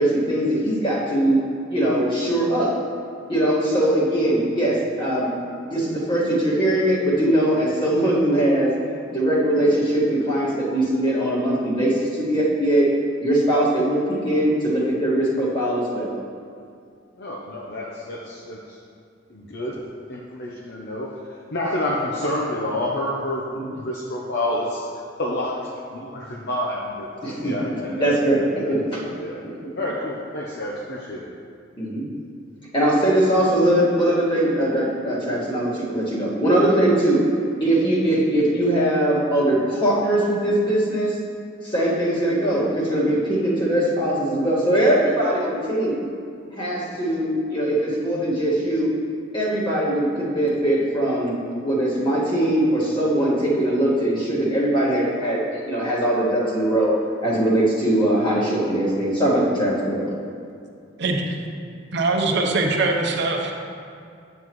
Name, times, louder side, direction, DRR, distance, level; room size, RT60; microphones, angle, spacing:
voice 1, 0.0-1.4 1.7-2.7 3.3-5.3 5.6-8.7 9.1-12.9 13.2-16.1 23.5-23.7 27.2-29.0 31.8-32.1 32.7-37.2 37.6-41.2 41.6-46.0 46.5-48.9 49.3-56.9 57.2-60.1, right 1 dB, 25° left, -7 dB, 1.9 m, -21 dB
voice 2, 17.2-18.8 19.3-19.8 20.1-21.2 21.5-24.9 25.2-28.2 28.6-28.8 29.0-29.4 29.8-31.3, left 1 dB, 60° left, -3 dB, 0.7 m, -29 dB
voice 3, 61.0-61.3 61.9-63.5, right 3 dB, 60° right, 1 dB, 0.8 m, -22 dB
9.8 x 7.2 x 3.1 m, 2.4 s
head